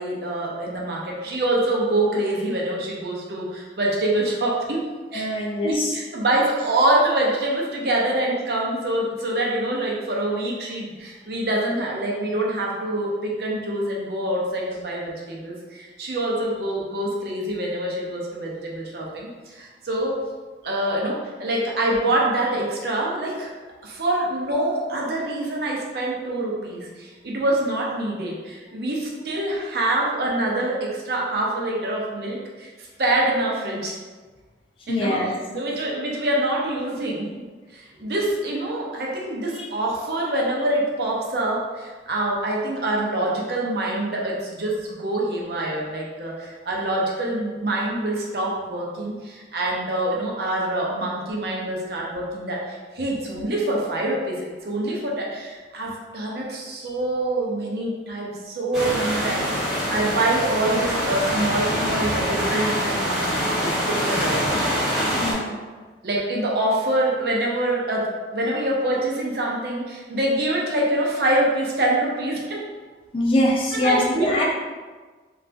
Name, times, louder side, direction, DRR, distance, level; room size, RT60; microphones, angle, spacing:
voice 1, 0.0-4.8 5.1-5.3 5.6-20.2 20.6-23.5 23.8-32.7 33.0-33.9 34.9-37.3 37.7-64.5 66.0-72.6 73.7-74.4, right 1 dB, 60° right, -3 dB, 0.6 m, -25 dB
voice 2, 5.1-5.9 30.0-30.1 34.9-35.3 39.5-39.7 65.1-65.6 73.1-74.4, left 1 dB, 30° left, -2 dB, 0.4 m, -23 dB
sound 1, 58.7-65.3, equal, ahead, 1.1 m, -24 dB
3.3 x 2.3 x 2.5 m, 1.4 s
head